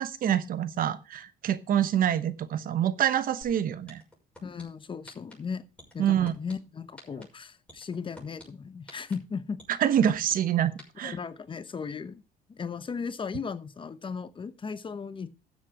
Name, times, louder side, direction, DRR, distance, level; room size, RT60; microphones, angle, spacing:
voice 1, 0.0-4.0 6.0-6.3 9.7-11.2, right 10 dB, 55° right, 1.1 m, -26 dB
sound 1, 3.4-3.5 3.9-4.6 5.1-5.3 5.8-6.5 7.0-7.2 7.7-8.4 8.9-9.1 9.6-10.3 10.8-10.9, left 1 dB, 5° left, 6.2 m, -47 dB
voice 2, 4.4-5.6 5.9-9.6 11.0-12.2 12.5-15.3, left 5 dB, 30° left, 0.9 m, -36 dB
13.5 x 7.6 x 4.9 m
cardioid pair, 110°, 17 cm